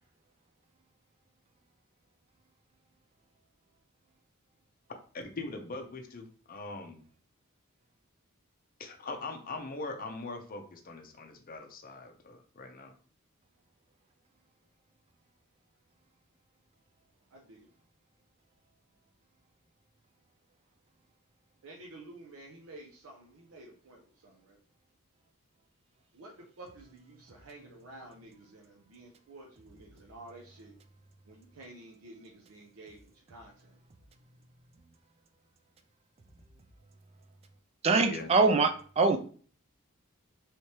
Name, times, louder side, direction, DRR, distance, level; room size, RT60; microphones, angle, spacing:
voice 1, 5.1-7.0 8.8-12.9 38.1-38.3, left 3 dB, 40° left, 5 dB, 0.6 m, -41 dB
voice 2, 17.3-17.7 21.6-24.6 26.1-30.8 31.2-33.8, right 2 dB, 85° right, 0 dB, 0.6 m, -51 dB
voice 3, 37.8-39.2, right 3 dB, 30° right, 8 dB, 0.3 m, -24 dB
3.2 x 3.1 x 2.8 m, 0.43 s
head